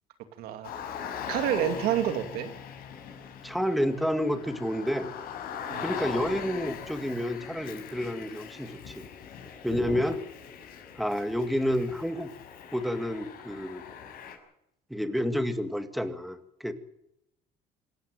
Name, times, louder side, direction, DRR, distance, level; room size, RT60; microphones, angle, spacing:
voice 1, 0.4-0.7 1.3-2.5 5.7-5.8, right 10 dB, 75° right, 8 dB, 2.6 m, -28 dB
Car, 0.6-14.3, left 7 dB, 70° left, 6.3 m, -40 dB
voice 2, 3.4-5.2 5.8-9.1 9.6-10.2 11.0-12.3 12.7-13.8 14.9-16.7, equal, ahead, 8 dB, 2.1 m, -29 dB
26.5 x 13.5 x 9.1 m, 0.80 s
cardioid pair, 115°, 16 cm